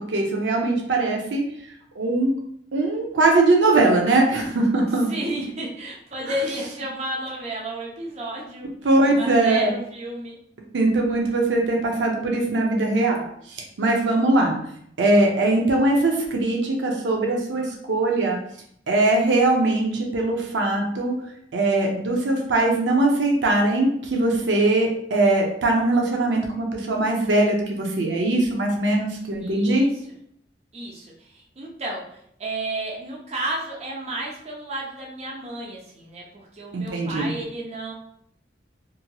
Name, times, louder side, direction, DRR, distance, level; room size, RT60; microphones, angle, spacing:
voice 1, 0.0-1.4 2.0-2.3 2.7-5.1 8.8-9.7 10.7-14.6 15.0-18.4 18.9-21.2 21.5-29.9 36.7-37.3, right 2 dB, 90° right, 1 dB, 0.5 m, -21 dB
voice 2, 5.1-8.7 9.1-10.4 29.4-29.9 30.7-37.9, right 1 dB, 35° right, -3 dB, 0.6 m, -32 dB
2.8 x 2.6 x 2.2 m, 0.69 s
head